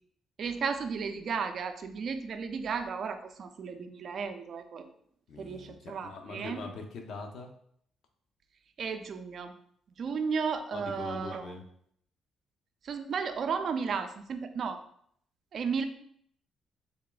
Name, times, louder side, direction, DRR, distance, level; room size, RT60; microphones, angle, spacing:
voice 1, 0.4-4.9 5.4-6.6 8.8-9.5 10.0-11.5 12.8-14.8 15.5-15.8, right 5 dB, 55° right, 8 dB, 0.4 m, -34 dB
voice 2, 5.3-7.5 10.7-11.6, left 3 dB, 70° left, 4 dB, 0.6 m, -42 dB
3.5 x 2.4 x 3.8 m, 0.66 s
cardioid pair, 90°, 0 cm